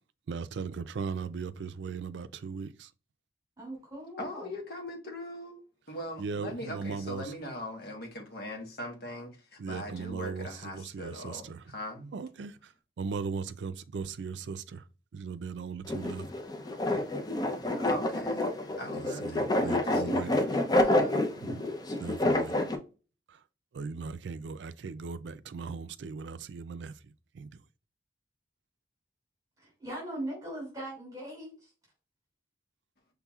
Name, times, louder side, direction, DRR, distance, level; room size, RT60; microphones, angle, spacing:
voice 1, 0.3-2.9 6.2-7.3 9.6-11.6 12.1-14.8 15.1-16.3 18.9-20.3 21.4-21.6 22.0-22.7 23.3-23.4 23.7-26.9 27.3-27.5, right 5 dB, 80° right, 0.4 m, -38 dB
voice 2, 3.6-4.5 29.6-31.7, right 1 dB, 20° right, 2.4 m, -40 dB
voice 3, 4.2-12.1 17.4-18.5 18.8-21.2, left 1 dB, 60° left, 1.2 m, -41 dB
sound 1, 15.9-22.8, left 1 dB, 20° left, 0.6 m, -28 dB
5.7 x 3.5 x 2.3 m
head